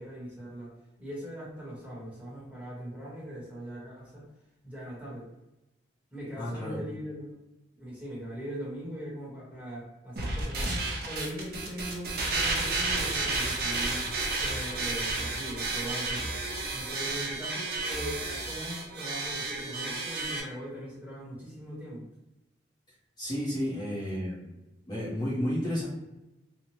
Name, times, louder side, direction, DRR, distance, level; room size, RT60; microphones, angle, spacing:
voice 1, 0.0-4.3 4.6-5.3 6.1-7.3 7.7-14.1 14.4-16.5 16.7-22.1, equal, 5° right, -7 dB, 0.9 m, -40 dB
voice 2, 6.4-6.8 23.2-24.5 24.9-25.9, equal, 25° left, -8 dB, 0.6 m, -32 dB
sound 1, 10.2-20.4, right 2 dB, 55° right, 0.6 m, -32 dB
2.7 x 2.1 x 3.0 m, 0.98 s
head